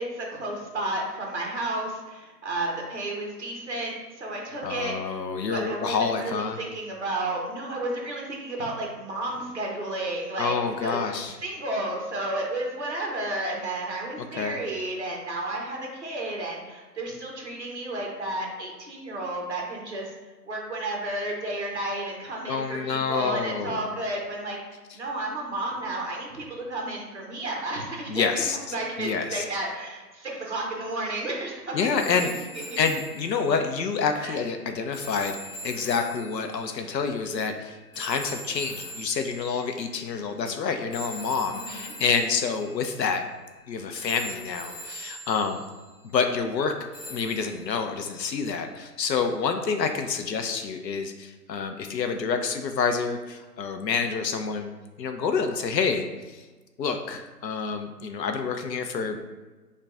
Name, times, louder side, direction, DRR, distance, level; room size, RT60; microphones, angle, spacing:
voice 1, 0.0-5.2 5.5-10.5 10.8-11.0 11.4-20.1 20.5-24.6 24.9-28.4 28.7-31.8 32.1-32.8 34.2-34.4 41.5-41.9, right 1 dB, 45° right, -1 dB, 0.7 m, -32 dB
voice 2, 4.6-6.6 10.4-11.4 14.3-14.6 22.5-23.8 28.1-29.4 31.7-32.3 32.8-35.4 35.6-43.2 43.7-45.6 46.0-46.8 47.1-54.7 55.0-56.4 56.8-59.2, left 5 dB, 80° left, 6 dB, 0.6 m, -28 dB
sound 1, 32.0-40.2 40.9-43.6 43.9-46.1 46.9-49.2 50.3-50.4, left 1 dB, 40° left, 0.7 m, -43 dB
4.8 x 2.2 x 2.3 m, 1.3 s
hypercardioid pair, 175°, 49 cm